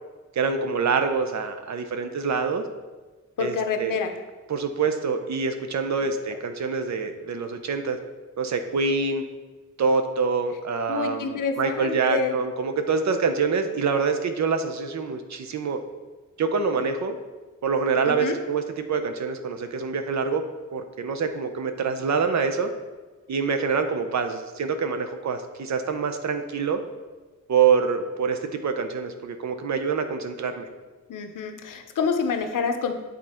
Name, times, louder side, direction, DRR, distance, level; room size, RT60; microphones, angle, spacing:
voice 1, 0.3-2.6 3.4-4.0 4.5-8.0 8.4-9.2 9.8-15.8 16.4-17.2 17.6-20.4 20.7-22.7 23.3-26.8 27.5-30.7, right 5 dB, 65° right, 7 dB, 0.7 m, -25 dB
voice 2, 3.4-4.1 10.9-12.4 18.0-18.4 31.1-32.9, left 5 dB, 90° left, 6 dB, 0.7 m, -27 dB
8.4 x 3.8 x 4.3 m, 1.3 s
wide cardioid pair, 145°, 31 cm